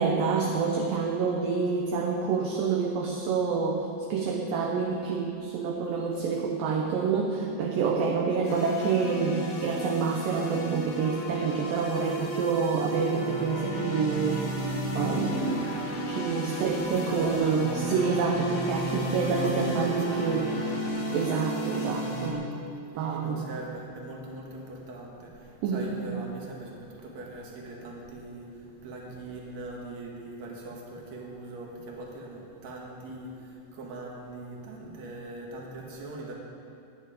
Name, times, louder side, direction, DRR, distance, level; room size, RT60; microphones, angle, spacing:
voice 1, 0.0-14.5 14.9-15.6 16.1-20.5 21.1-22.5 23.0-23.5 25.6-25.9, right 5 dB, 70° right, 0 dB, 2.2 m, -28 dB
sound 1, 8.4-22.3, right 1 dB, 80° left, 4.4 m, -32 dB
voice 2, 16.8-18.3 19.0-21.0 22.9-36.3, right 2 dB, 50° right, -2 dB, 2.7 m, -41 dB
20.0 x 9.4 x 5.1 m, 2.6 s
omnidirectional pair, 4.8 m